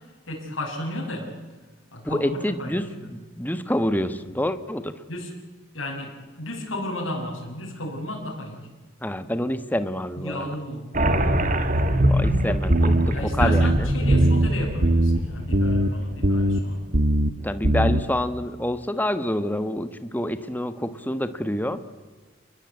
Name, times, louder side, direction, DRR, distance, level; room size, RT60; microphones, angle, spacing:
voice 1, 0.3-1.3 1.9-2.7 5.1-5.3 5.7-8.6 10.2-10.9 13.1-16.8, left 1 dB, 80° left, -2 dB, 6.5 m, -33 dB
voice 2, 2.0-4.9 9.0-10.5 12.1-13.9 17.4-21.8, left 1 dB, 10° left, 11 dB, 1.3 m, -27 dB
sound 1, 10.9-16.2, equal, 40° right, 2.3 m, -23 dB
sound 2, 12.7-13.1 13.4-13.8 14.1-14.5 14.8-15.2 15.5-15.9 16.2-16.6 16.9-17.3 17.6-18.0, right 1 dB, 55° right, 1.6 m, -20 dB
28.5 x 21.5 x 8.5 m, 1.3 s
head